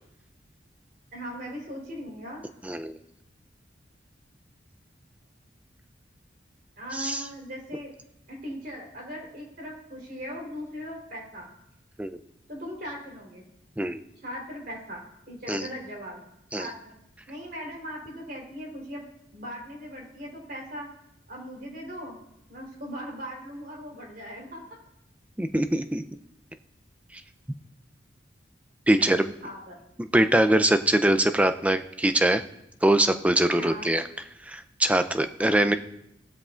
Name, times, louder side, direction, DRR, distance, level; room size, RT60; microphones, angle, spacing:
voice 1, 1.1-2.5 6.8-7.9 8.3-11.5 12.5-13.4 14.2-16.2 16.6-16.9 17.3-19.0 19.3-20.9 21.3-22.2 22.5-24.6 29.0-29.8 33.6-33.9, equal, 50° right, -1 dB, 3.7 m, -39 dB
voice 2, 25.4-26.0 28.9-29.2 30.1-32.4 32.8-34.0 34.5-35.8, right 1 dB, 5° right, 9 dB, 0.4 m, -22 dB
17.5 x 12.5 x 2.5 m, 0.82 s
head